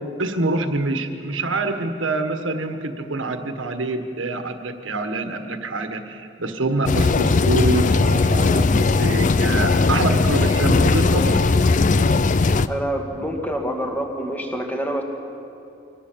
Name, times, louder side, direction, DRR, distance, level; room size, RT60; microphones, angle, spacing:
voice 1, 0.2-11.5, right 2 dB, 80° right, 7 dB, 1.6 m, -25 dB
sound 1, 6.9-12.7, left 3 dB, 40° left, 0.5 m, -18 dB
voice 2, 12.7-15.0, equal, 10° left, 2 dB, 2.1 m, -26 dB
24.5 x 17.5 x 7.6 m, 2.7 s
head